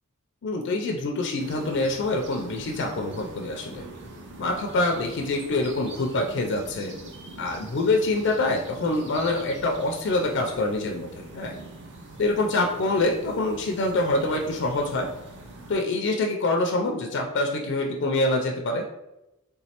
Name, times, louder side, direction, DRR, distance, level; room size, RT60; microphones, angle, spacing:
voice 1, 0.4-3.8 4.4-6.9 7.4-11.5 12.2-15.1 15.7-18.9, left 2 dB, 55° left, 2 dB, 0.4 m, -25 dB
sound 1, 1.4-15.7, right 2 dB, 55° right, 0.5 m, -43 dB
3.4 x 3.0 x 2.8 m, 0.95 s
head